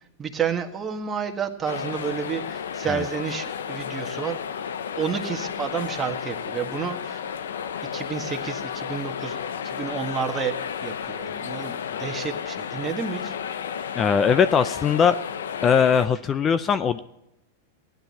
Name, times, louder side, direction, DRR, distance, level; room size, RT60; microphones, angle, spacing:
voice 1, 0.2-4.4 5.0-7.2 7.9-9.4 9.6-10.5 10.8-13.3, right 7 dB, 20° right, 3 dB, 1.7 m, -30 dB
sound 1, 1.7-16.1, left 7 dB, 80° left, 0.8 m, -32 dB
voice 2, 13.9-15.2 15.6-17.0, left 7 dB, 30° left, 12 dB, 0.5 m, -20 dB
16.5 x 11.5 x 4.3 m, 0.84 s
hypercardioid pair, 110°, 0 cm